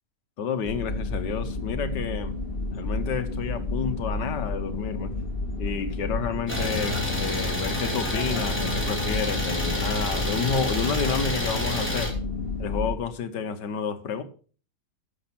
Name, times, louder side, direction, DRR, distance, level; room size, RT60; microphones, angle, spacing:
voice 1, 0.4-2.4 2.7-5.1 5.6-12.1 12.6-14.2, left 6 dB, 75° left, 11 dB, 1.7 m, -30 dB
sound 1, 0.6-13.0, left 2 dB, 30° left, 2.2 m, -31 dB
Idling, 6.5-12.1, equal, 5° left, 3.6 m, -29 dB
12.0 x 7.3 x 5.9 m, 0.40 s
omnidirectional pair, 1.9 m